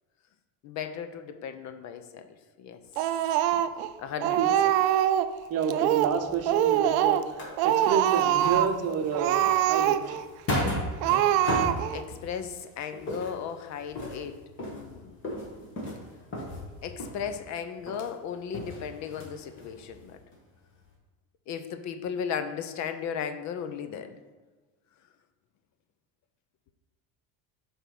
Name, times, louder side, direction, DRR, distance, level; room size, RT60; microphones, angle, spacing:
voice 1, 0.6-2.3 2.6-2.8 3.5-3.6 4.0-4.4 4.6-4.7 11.9-15.2 16.8-20.2 21.5-24.2, left 7 dB, 50° left, 9 dB, 0.6 m, -36 dB
Speech, 3.0-3.9 4.2-5.3 5.7-6.2 6.4-7.3 7.6-8.8 9.1-10.2 10.6-10.7 11.0-12.0, right 11 dB, 80° right, 0.5 m, -24 dB
voice 2, 5.5-7.2 7.6-10.2, right 7 dB, 40° right, 7 dB, 0.7 m, -29 dB
sound 1, 6.0-8.1 8.4-12.6 12.9-17.5 17.8-18.1 18.5-20.0 20.3-20.4 20.8-20.9, left 1 dB, 30° left, 1.9 m, -35 dB
8.2 x 3.5 x 5.9 m, 1.3 s
cardioid pair, 140°, 37 cm